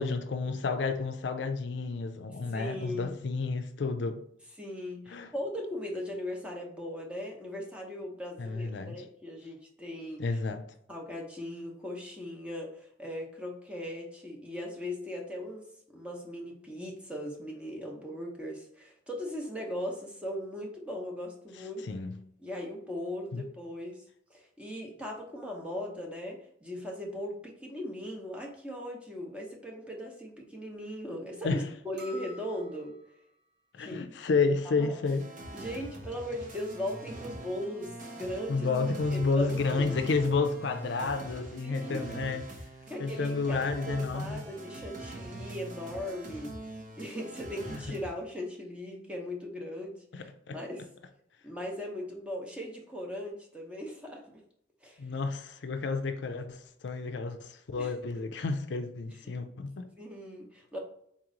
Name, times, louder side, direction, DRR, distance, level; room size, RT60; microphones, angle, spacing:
voice 1, 0.0-4.2 5.1-5.3 8.4-9.0 10.2-10.6 21.9-22.1 23.3-23.4 31.4-31.6 33.7-35.3 38.5-42.4 43.0-44.4 47.7-47.8 50.1-50.6 55.0-59.9, left 4 dB, 65° left, 0.4 m, -31 dB
voice 2, 2.5-3.1 4.6-10.2 10.9-15.7 15.9-21.9 22.4-24.0 24.3-32.9 33.8-34.1 34.6-35.0 35.5-38.7 39.1-39.9 41.6-42.3 42.9-50.8 51.4-54.2 54.8-55.1 57.8-57.9 59.3-59.4 60.0-60.8, left 1 dB, 5° right, 0.8 m, -39 dB
sound 1, 32.0-33.3, left 2 dB, 70° right, 1.0 m, -49 dB
sound 2, 35.0-48.1, right 1 dB, 45° right, 0.9 m, -43 dB
4.2 x 3.0 x 3.7 m
head